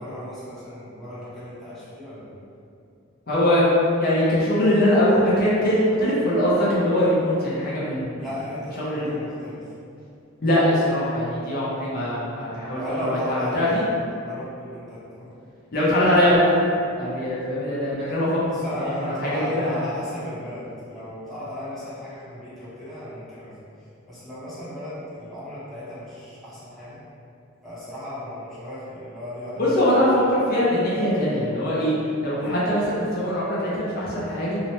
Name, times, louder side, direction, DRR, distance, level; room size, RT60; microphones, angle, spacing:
voice 1, 0.0-2.4 8.2-9.7 12.6-13.6 13.9-15.3 18.5-23.5 24.1-27.0 27.6-29.7, left 1 dB, ahead, -13 dB, 0.7 m, -35 dB
voice 2, 3.3-3.6 4.0-8.2 8.8-9.1 10.4-13.8 15.7-16.5 17.0-18.4 18.7-19.8 29.6-31.9 32.2-34.6, left 1 dB, 50° left, -8 dB, 0.5 m, -22 dB
2.8 x 2.0 x 2.8 m, 2.5 s
head